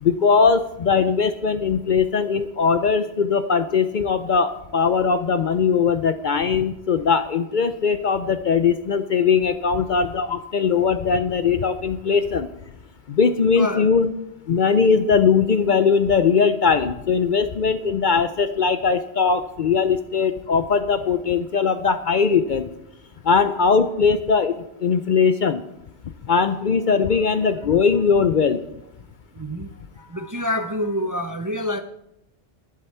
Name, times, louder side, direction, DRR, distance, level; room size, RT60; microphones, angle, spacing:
voice 1, 0.0-12.5 13.1-14.1 14.5-22.7 23.2-24.5 24.8-25.6 26.3-28.6, left 5 dB, 55° left, 11 dB, 0.6 m, -20 dB
voice 2, 13.6-13.9 29.3-29.7 30.0-31.8, left 1 dB, 25° right, 7 dB, 0.5 m, -27 dB
11.5 x 11.5 x 4.4 m, 0.84 s
omnidirectional pair, 1.2 m